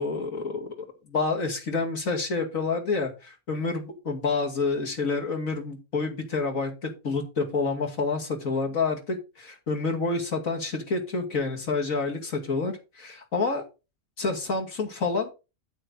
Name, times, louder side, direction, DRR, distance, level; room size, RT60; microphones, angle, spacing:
voice 1, 0.0-13.6 14.2-15.3, left 3 dB, 85° left, 3 dB, 2.9 m, -28 dB
9.0 x 9.0 x 4.0 m, 0.28 s
omnidirectional pair, 1.4 m